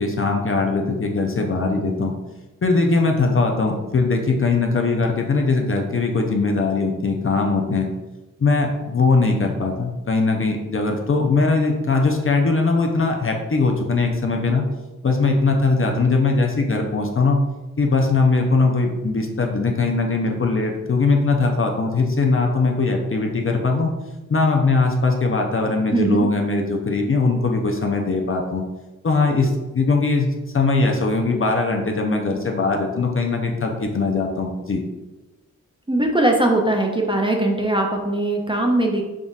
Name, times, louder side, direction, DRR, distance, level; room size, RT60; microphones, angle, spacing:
voice 1, 0.0-2.1 2.6-7.9 8.4-14.6 15.0-17.4 17.8-23.9 24.3-28.6 29.0-30.3 30.5-34.8, left 3 dB, 40° left, 2 dB, 0.5 m, -20 dB
voice 2, 25.9-26.3 35.9-39.0, right 1 dB, 15° right, 1 dB, 0.6 m, -20 dB
3.9 x 3.7 x 2.4 m, 1.1 s
cardioid pair, 60°, 33 cm